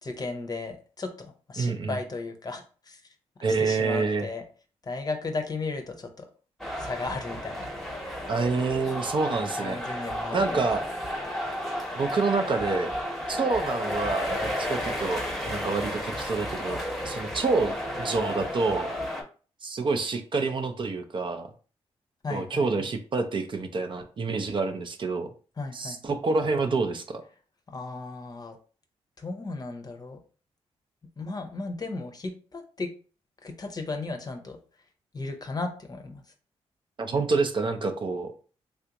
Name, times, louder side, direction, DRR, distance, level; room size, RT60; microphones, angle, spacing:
voice 1, 0.0-3.0 3.6-4.4 4.8-6.3 6.8-7.7 9.6-10.7 22.2-22.9 25.6-26.0 27.7-28.6 29.2-30.2 31.2-32.9 33.4-34.6 35.1-36.2, left 3 dB, 35° left, 5 dB, 0.7 m, -35 dB
voice 2, 1.6-2.0 3.4-4.3 8.3-9.8 10.3-10.9 12.0-12.9 13.3-16.8 17.0-18.9 19.6-21.5 22.3-25.3 25.7-27.2 37.0-38.3, right 4 dB, 45° right, 7 dB, 0.5 m, -27 dB
sound 1, 6.6-19.2, equal, ahead, 0.9 m, -32 dB
3.4 x 2.5 x 2.9 m, 0.38 s
cardioid pair, 75°, 11 cm